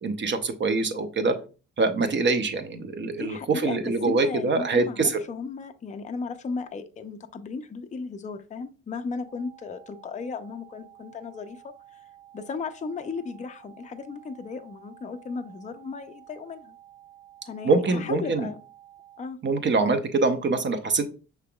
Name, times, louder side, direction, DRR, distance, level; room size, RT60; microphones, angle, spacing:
voice 1, 0.0-1.3 1.8-5.2 17.6-18.5 19.4-21.0, right 3 dB, 40° right, 8 dB, 0.7 m, -24 dB
voice 2, 3.0-11.7 12.3-16.8 17.5-18.6 19.2-19.4, left 4 dB, 25° left, 7 dB, 0.5 m, -35 dB
sound 1, 9.3-19.3, right 12 dB, 80° right, 1.9 m, -52 dB
5.8 x 3.5 x 2.2 m, 0.34 s
cardioid pair, 90°, 30 cm